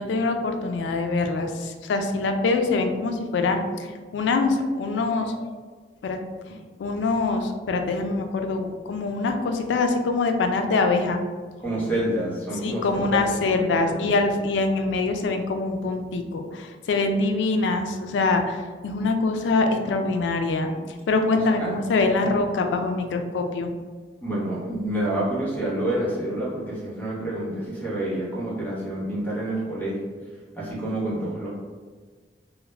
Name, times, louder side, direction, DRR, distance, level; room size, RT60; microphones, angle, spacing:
voice 1, 0.0-5.5 6.0-6.2 6.8-11.2 12.6-20.7 21.1-23.7, left 3 dB, 90° left, 5 dB, 0.3 m, -24 dB
voice 2, 11.6-13.3 13.6-14.0 21.6-21.7 24.2-30.0 30.5-31.5, right 1 dB, 10° left, -7 dB, 0.8 m, -28 dB
2.3 x 2.0 x 3.1 m, 1.5 s
head